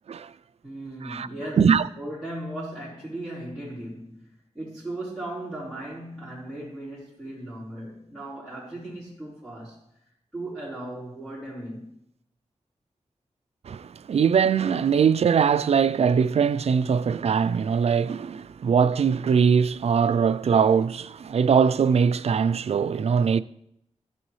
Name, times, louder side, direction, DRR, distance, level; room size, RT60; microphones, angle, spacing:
voice 1, 0.6-9.8 10.3-11.9, right 1 dB, 5° left, 4.0 m, -37 dB
voice 2, 13.7-23.4, right 6 dB, 55° right, 0.4 m, -21 dB
14.5 x 6.9 x 3.2 m
wide cardioid pair, 100°, 12 cm